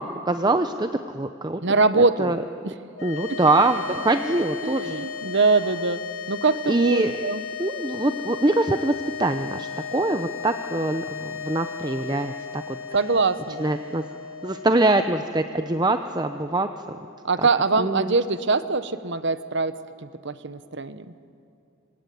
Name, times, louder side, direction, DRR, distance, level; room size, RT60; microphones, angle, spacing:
voice 1, 0.0-1.6 2.2-2.4 3.0-5.0 6.7-7.2 7.6-12.8 13.6-14.0 14.4-17.0 17.4-17.5 17.8-18.1, right 2 dB, 20° right, 8 dB, 0.8 m, -24 dB
voice 2, 1.6-2.3 2.6-2.7 4.6-6.0 6.3-7.4 12.9-13.6 17.2-19.7 20.0-21.1, right 4 dB, 60° right, 13 dB, 1.1 m, -23 dB
sound 1, 2.9-17.4, left 6 dB, 75° left, 2.5 m, -36 dB
26.5 x 24.0 x 9.4 m, 2.6 s
head